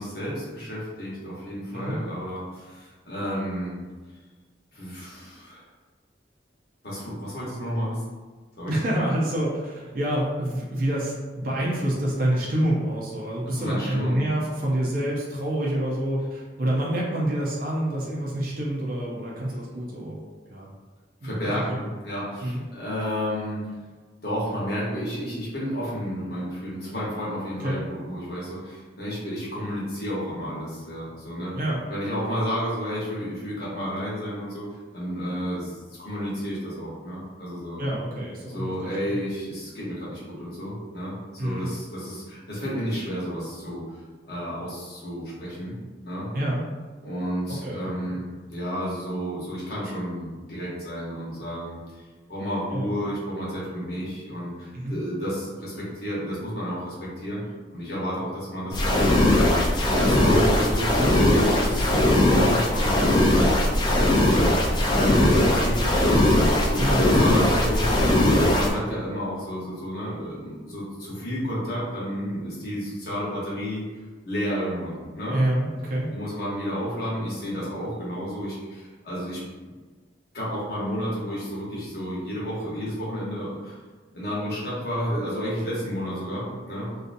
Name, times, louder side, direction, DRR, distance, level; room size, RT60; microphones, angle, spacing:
voice 1, 0.0-3.8 4.7-5.6 6.8-8.0 8.6-8.7 13.5-14.2 21.2-23.6 24.2-31.5 31.9-34.7 34.9-37.8 38.5-41.1 41.4-43.8 44.2-45.8 46.0-46.3 47.0-52.0 52.3-57.4 57.7-63.5 64.9-66.3 66.6-67.9 68.2-73.9 74.2-75.4 76.1-79.7 80.3-83.8 84.1-86.9, equal, 60° left, -7 dB, 1.0 m, -31 dB
voice 2, 8.7-20.2 20.5-20.7 21.2-21.3 21.7-21.8 22.4-22.6 27.6-27.8 31.5-31.8 37.8-39.2 41.4-41.7 46.3-46.6 47.5-48.2 52.7-52.9 54.7-54.9 66.8-67.1 75.3-76.1, right 1 dB, 50° right, -4 dB, 0.5 m, -27 dB
sound 1, 58.7-68.7, left 1 dB, 25° left, 0.3 m, -20 dB
2.6 x 2.3 x 2.5 m, 1.4 s
head